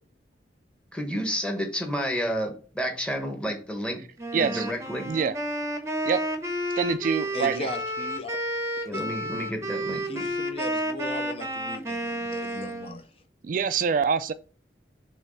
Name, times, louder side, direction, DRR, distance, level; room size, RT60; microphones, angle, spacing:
voice 1, 0.9-4.0 4.3-5.1 8.8-10.2, equal, 5° left, 1.3 m, -30 dB
Wind instrument woodwind instrument, 4.2-13.0, equal, 15° right, 0.9 m, -31 dB
voice 2, 4.3-4.7 5.1-5.4 6.1-6.2 6.8-7.7 13.4-14.3, right 6 dB, 50° right, 0.3 m, -25 dB
voice 3, 7.3-8.3 8.9-9.1 10.1-13.1, left 1 dB, 35° left, 0.7 m, -37 dB
6.9 x 3.1 x 5.6 m
head